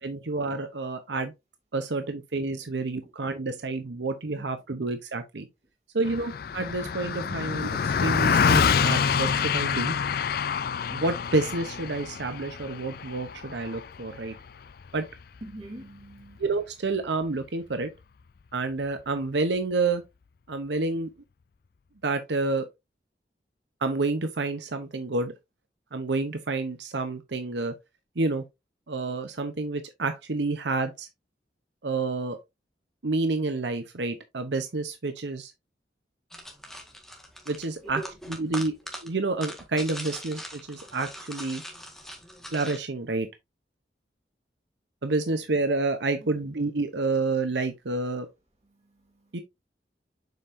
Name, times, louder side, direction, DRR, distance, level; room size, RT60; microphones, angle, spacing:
voice 1, 0.0-1.3 1.7-5.5 5.9-9.9 10.9-14.4 14.9-15.1 16.4-17.9 18.5-20.0 20.5-21.1 22.0-22.7 23.8-25.3 25.9-27.8 28.2-28.4 28.9-31.1 31.8-32.4 33.0-35.5 37.5-38.0 38.4-38.7 39.0-41.6 42.5-43.3 45.0-48.3 49.3-49.4, right 3 dB, 85° right, 0.8 m, -29 dB
Car passing by, 6.0-15.7, left 6 dB, 55° left, 0.4 m, -27 dB
voice 2, 15.4-16.4 37.8-38.1 48.6-49.4, right 2 dB, 40° right, 3.3 m, -43 dB
sound 1, 36.3-42.8, equal, ahead, 1.6 m, -41 dB
7.3 x 5.6 x 2.6 m
head